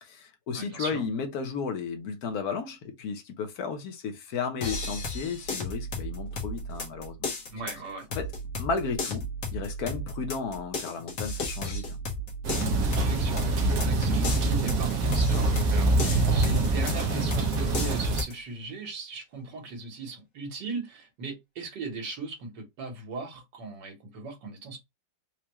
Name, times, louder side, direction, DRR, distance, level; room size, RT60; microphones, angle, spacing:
voice 1, 0.0-7.2 8.1-8.3 8.6-9.3 9.5-12.0, left 5 dB, 65° left, 1.4 m, -33 dB
voice 2, 0.5-1.0 7.5-8.1 12.9-24.8, right 3 dB, 90° right, 1.9 m, -38 dB
sound 1, 4.6-18.3, left 1 dB, 85° left, 1.8 m, -34 dB
sound 2, 12.4-18.2, right 2 dB, 60° right, 1.4 m, -25 dB
4.7 x 2.2 x 3.0 m
omnidirectional pair, 1.8 m